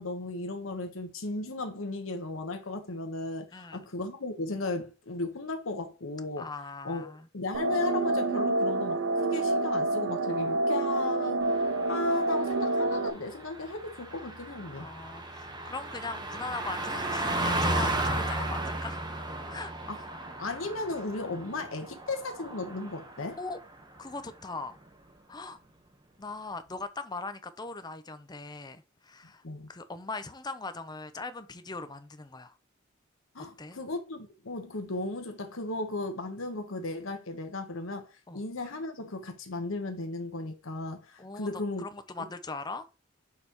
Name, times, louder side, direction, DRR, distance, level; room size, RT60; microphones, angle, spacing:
voice 1, 0.0-6.5 6.8-11.5 11.9-14.9 19.9-23.4 29.4-29.7 33.3-41.9, left 2 dB, 75° left, 1.2 m, -35 dB
voice 2, 3.5-3.9 6.4-7.3 14.8-19.0 19.5-20.1 23.4-23.6 24.0-24.8 25.3-25.6 26.2-29.4 29.7-32.5 33.6-33.8 38.3-38.4 41.2-42.9, left 3 dB, 20° left, 0.7 m, -40 dB
sound 1, 7.5-13.1, right 2 dB, 70° right, 0.7 m, -28 dB
Car passing by, 11.5-23.4 23.7-24.0, right 1 dB, 20° right, 1.1 m, -35 dB
6.6 x 5.4 x 3.0 m
head